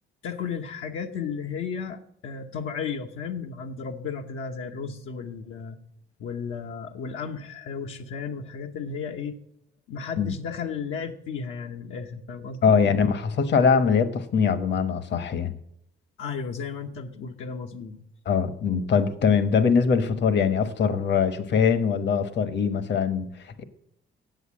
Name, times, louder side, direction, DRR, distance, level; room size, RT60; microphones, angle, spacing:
voice 1, 0.2-5.8 6.2-9.4 9.9-12.8 16.2-18.0, left 6 dB, 85° left, 1.0 m, -34 dB
voice 2, 12.6-15.5 18.3-23.6, left 6 dB, 60° left, 1.1 m, -22 dB
8.1 x 8.1 x 8.5 m
cardioid pair, 90°, 20 cm